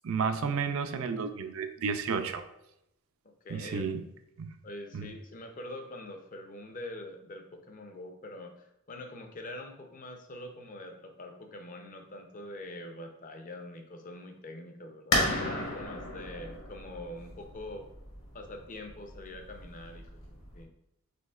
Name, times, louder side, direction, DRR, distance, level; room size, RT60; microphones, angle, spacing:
voice 1, 0.0-2.4 3.5-4.1 4.4-4.5 4.9-5.0, right 5 dB, 70° right, 8 dB, 0.4 m, -32 dB
voice 2, 3.4-3.8 4.6-17.9 18.3-20.7, left 1 dB, 35° left, 4 dB, 0.5 m, -44 dB
sound 1, 15.1-20.6, left 1 dB, 65° left, 1.2 m, -34 dB
5.1 x 3.6 x 2.4 m, 0.82 s
head